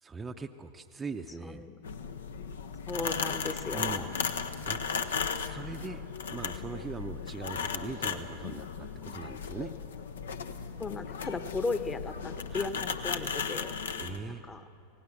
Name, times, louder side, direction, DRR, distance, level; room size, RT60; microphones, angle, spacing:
voice 1, 0.0-1.6 3.7-4.1 4.7-4.8 5.3-9.7 12.5-12.7 14.0-14.4, right 4 dB, 15° right, 5 dB, 0.8 m, -41 dB
voice 2, 1.4-1.7 2.9-4.1 10.8-13.8 14.3-14.7, left 3 dB, 20° left, 10 dB, 1.2 m, -36 dB
sound 1, 1.8-14.2, left 6 dB, 65° left, 1.0 m, -36 dB
26.0 x 18.0 x 7.6 m, 2.7 s
figure-of-eight pair, 90°, 0 cm